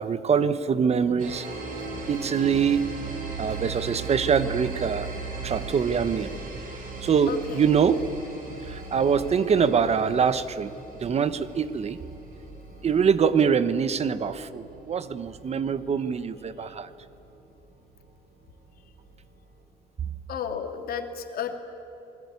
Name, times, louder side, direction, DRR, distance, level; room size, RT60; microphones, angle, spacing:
voice 1, 0.0-1.5 2.1-2.9 3.4-5.1 5.4-6.3 7.0-8.0 8.7-10.7 11.0-12.0 12.8-16.9, right 6 dB, 40° right, 14 dB, 1.1 m, -24 dB
sound 1, 1.2-16.6, right 4 dB, 55° right, 5.8 m, -38 dB
voice 2, 7.3-7.7 16.6-16.7 20.3-21.6, left 7 dB, 60° left, 5 dB, 2.7 m, -33 dB
27.0 x 21.0 x 9.7 m, 2.9 s
cardioid pair, 110°, 17 cm